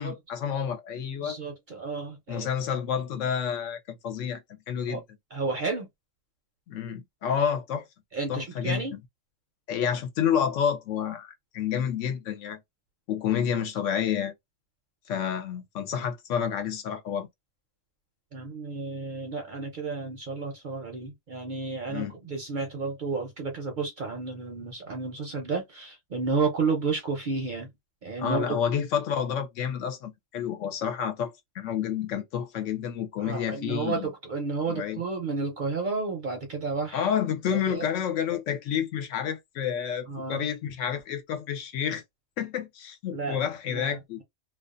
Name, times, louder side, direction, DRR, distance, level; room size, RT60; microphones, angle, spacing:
voice 1, 0.0-1.4 2.3-5.0 6.7-7.8 8.3-8.8 9.7-12.6 13.1-14.3 15.1-17.3 21.9-22.1 28.2-34.1 34.7-35.0 36.9-42.0 42.4-44.2, left 8 dB, 75° left, 0.9 m, -29 dB
voice 2, 1.2-2.5 4.9-5.0 5.3-5.9 8.1-8.9 18.3-27.7 28.0-28.8 33.2-37.1 37.5-37.9 40.1-40.4 43.1-44.2, right 4 dB, 55° right, 0.6 m, -32 dB
2.4 x 2.2 x 2.4 m
omnidirectional pair, 1.3 m